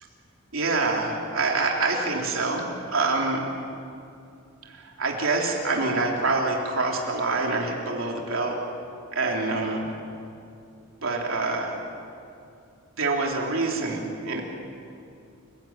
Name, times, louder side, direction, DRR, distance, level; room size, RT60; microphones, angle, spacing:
voice 1, 0.5-3.4 4.6-8.6 9.1-9.8 11.0-11.7 13.0-14.4, right 3 dB, 70° right, 0 dB, 3.5 m, -26 dB
29.0 x 16.5 x 9.0 m, 2.6 s
head